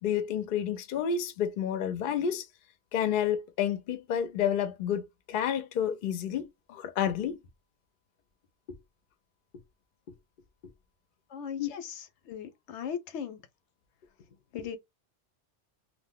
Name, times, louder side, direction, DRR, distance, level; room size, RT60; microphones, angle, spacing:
voice 1, 0.0-2.5 2.9-7.4 8.7-8.8 11.6-11.7, left 8 dB, 60° left, 0.6 m, -30 dB
voice 2, 11.3-13.4 14.5-14.8, left 7 dB, 85° left, 0.9 m, -38 dB
2.5 x 2.1 x 3.6 m
omnidirectional pair, 1.2 m